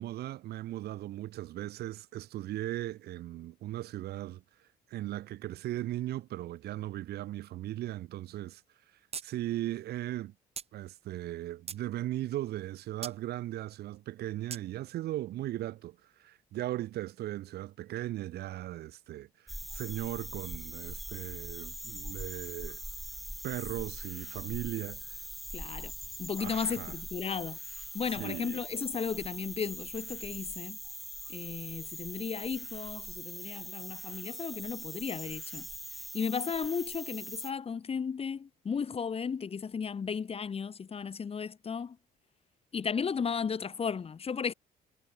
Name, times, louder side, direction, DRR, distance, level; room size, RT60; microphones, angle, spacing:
voice 1, 0.0-4.4 4.9-8.6 9.2-10.3 10.7-22.8 23.4-25.1 26.4-26.9 28.2-28.6, right 14 dB, 70° right, 3.5 m, -37 dB
sound 1, 9.1-9.3 9.6-9.7 10.6-10.7 11.3-11.9 13.0-13.2 14.5-14.6, right 6 dB, 35° right, 3.4 m, -40 dB
sound 2, 19.5-37.5, equal, ahead, 3.8 m, -42 dB
voice 2, 25.5-25.9 26.2-27.6 27.9-30.8 31.3-35.7 36.1-42.0 42.7-44.5, left 6 dB, 35° left, 6.9 m, -35 dB
cardioid pair, 110°, 17 cm